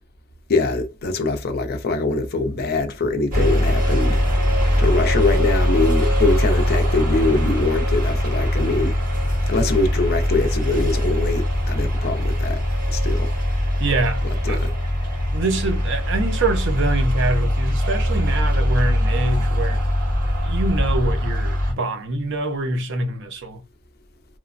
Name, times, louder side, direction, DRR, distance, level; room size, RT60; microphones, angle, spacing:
voice 1, 0.5-4.2 4.8-9.0 9.5-12.6 12.9-13.3 14.5-14.7, left 3 dB, 50° left, 0.5 m, -23 dB
sound 1, 3.3-21.7, equal, 45° right, 1.9 m, -21 dB
voice 2, 13.8-14.6 15.3-19.8 20.4-23.6, right 2 dB, 60° right, 0.6 m, -25 dB
3.1 x 2.1 x 2.5 m
head